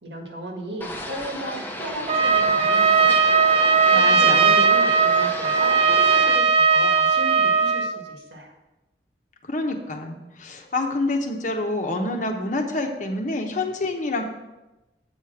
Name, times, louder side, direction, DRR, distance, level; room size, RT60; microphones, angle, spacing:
voice 1, 0.0-3.1 3.9-8.5, right 2 dB, 75° right, 1 dB, 1.7 m, -35 dB
sound 1, 0.8-6.4, left 1 dB, 10° left, 0.8 m, -34 dB
Trumpet, 2.1-8.0, right 5 dB, 35° right, 0.4 m, -18 dB
voice 2, 3.9-4.6 9.4-14.2, left 2 dB, 45° left, 3 dB, 1.0 m, -27 dB
8.1 x 5.0 x 5.9 m, 1.0 s
head